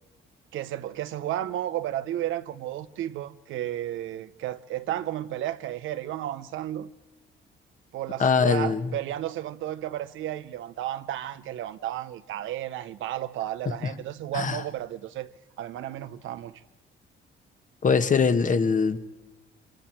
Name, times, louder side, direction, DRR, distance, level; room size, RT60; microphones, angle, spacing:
voice 1, 0.5-6.9 7.9-15.3 15.6-16.6, right 12 dB, 85° right, 0.8 m, -33 dB
voice 2, 8.2-8.8 14.3-14.6 17.8-19.0, left 5 dB, 40° left, 1.3 m, -22 dB
26.0 x 26.0 x 4.6 m
cardioid pair, 90°, 20 cm